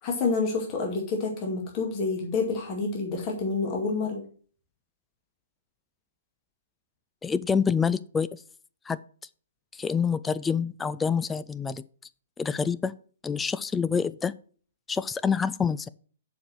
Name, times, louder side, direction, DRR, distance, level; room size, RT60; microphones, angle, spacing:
voice 1, 0.0-4.2, left 4 dB, 30° left, 0 dB, 2.1 m, -28 dB
voice 2, 7.2-8.4 8.9-9.0 9.7-11.8 12.4-12.9 13.2-14.3 14.9-15.9, left 6 dB, 10° left, 15 dB, 0.4 m, -27 dB
7.0 x 5.0 x 6.0 m, 0.43 s
figure-of-eight pair, 120°, 0 cm